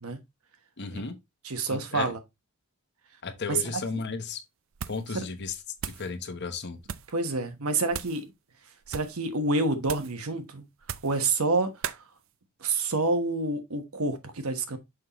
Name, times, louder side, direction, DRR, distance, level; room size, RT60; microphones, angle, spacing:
voice 1, 0.8-1.2 1.7-2.1 3.2-4.4 4.9-5.5 5.8-6.8, left 4 dB, 50° left, 1.0 m, -34 dB
voice 2, 1.4-2.2 3.5-3.6 5.1-5.2 7.1-8.3 8.9-10.6 11.0-11.7 12.6-14.8, right 3 dB, 80° right, 1.2 m, -28 dB
sound 1, 4.7-5.1 5.4-6.1 6.8-7.2 7.9-8.2 8.8-9.2 9.8-10.2 10.8-11.2 11.8-12.0, right 8 dB, 65° right, 0.5 m, -37 dB
6.3 x 5.6 x 3.0 m
head